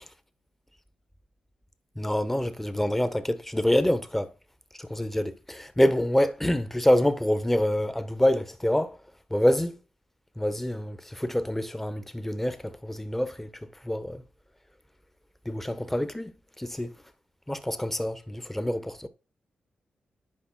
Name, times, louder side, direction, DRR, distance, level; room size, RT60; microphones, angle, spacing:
voice 1, 2.0-4.3 4.8-8.9 9.3-9.8 10.4-13.5 13.8-14.2 15.4-16.9 17.5-19.1, left 1 dB, 10° left, 1.3 m, -26 dB
11.0 x 5.2 x 4.3 m
cardioid pair, 75°, 3 cm